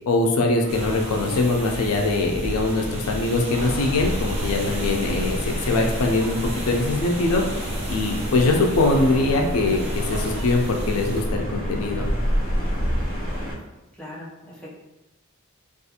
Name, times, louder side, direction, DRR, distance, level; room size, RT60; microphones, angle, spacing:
voice 1, 0.1-6.4 6.7-12.1, left 2 dB, 80° left, 2 dB, 0.4 m, -22 dB
sound 1, 0.6-10.4, right 1 dB, 60° right, 0.4 m, -39 dB
sound 2, 0.7-11.2, equal, 30° right, 0.8 m, -34 dB
sound 3, 3.6-13.6, equal, 85° right, 0.8 m, -28 dB
voice 2, 14.0-14.8, left 1 dB, 5° left, -6 dB, 0.6 m, -40 dB
2.4 x 2.4 x 2.7 m, 0.98 s
head